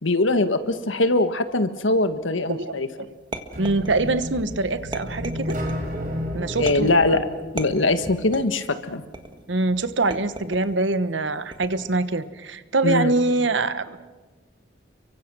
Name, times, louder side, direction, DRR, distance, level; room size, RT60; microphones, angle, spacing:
voice 1, 0.0-2.9 6.5-7.2 7.5-9.0 12.8-13.1, left 2 dB, 90° left, 10 dB, 1.5 m, -22 dB
voice 2, 2.5-3.1 3.6-5.5 6.3-6.9 9.5-14.0, right 2 dB, 70° right, 13 dB, 1.2 m, -24 dB
sound 1, 3.3-4.3 4.9-5.8 6.7-7.1 7.6-8.6 9.1-9.5 10.1-10.8 11.5-12.0, right 2 dB, 25° right, 1.6 m, -36 dB
sound 2, 3.5-8.5, equal, 45° right, 4.6 m, -32 dB
29.5 x 24.0 x 6.2 m, 1.3 s
head